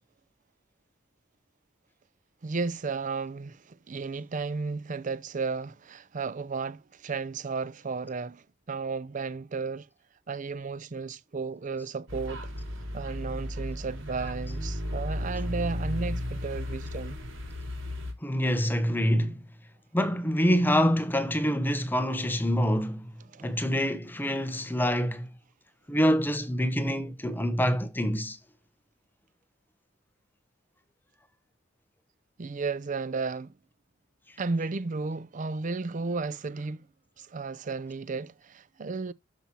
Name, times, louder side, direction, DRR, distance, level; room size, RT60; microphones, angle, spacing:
voice 1, 2.4-9.9 10.3-12.5 12.9-17.2 23.3-23.5 32.4-33.5 34.4-36.9 37.2-39.1, right 4 dB, 40° right, 0.5 m, -33 dB
sound 1, 12.1-18.1, left 1 dB, 80° right, 4.5 m, -34 dB
voice 2, 18.2-19.4 19.9-23.0 23.4-25.3 25.9-28.4, equal, 10° left, 0.9 m, -26 dB
12.5 x 5.9 x 2.8 m
head